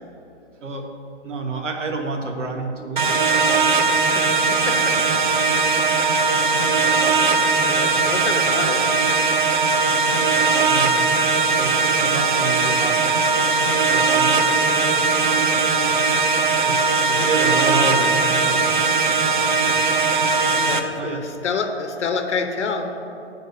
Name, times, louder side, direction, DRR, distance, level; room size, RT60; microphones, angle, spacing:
voice 1, 1.2-3.2 10.7-11.1 11.6-13.2 13.9-16.0 16.6-18.7 19.7-19.8 20.2-20.3 21.0-21.2, right 3 dB, 90° right, 3 dB, 1.4 m, -29 dB
sound 1, 3.0-20.8, right 4 dB, 45° right, 0.5 m, -19 dB
voice 2, 7.6-8.8 17.2-17.8 20.5-22.9, left 5 dB, 70° left, 5 dB, 1.1 m, -28 dB
8.0 x 4.6 x 6.6 m, 2.8 s
hypercardioid pair, 175°, 36 cm